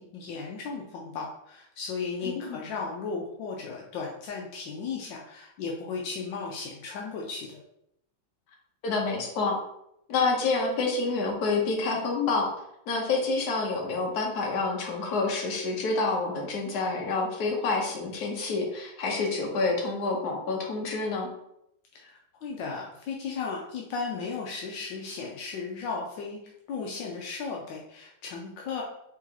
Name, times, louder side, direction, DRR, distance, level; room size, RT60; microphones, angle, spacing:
voice 1, 0.0-7.6 21.9-28.8, left 4 dB, 80° left, -1 dB, 1.3 m, -35 dB
voice 2, 2.2-2.6 8.8-9.6 10.1-12.5 12.9-21.3, left 3 dB, 60° left, -1 dB, 1.5 m, -28 dB
4.8 x 3.8 x 2.9 m, 0.78 s
omnidirectional pair, 2.1 m